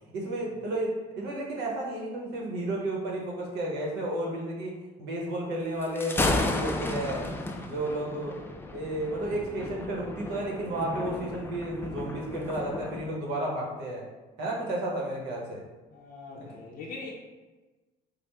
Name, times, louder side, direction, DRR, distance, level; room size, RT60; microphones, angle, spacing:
voice 1, 0.1-7.3 7.6-8.4 8.7-14.1 14.4-15.6 16.3-16.6, right 1 dB, 80° right, -1 dB, 1.0 m, -32 dB
Thunder, 5.8-13.1, left 2 dB, 15° left, 0.3 m, -33 dB
voice 2, 15.9-17.1, left 3 dB, 65° left, -3 dB, 0.6 m, -42 dB
4.8 x 2.0 x 3.3 m, 1.2 s
cardioid pair, 110°, 17 cm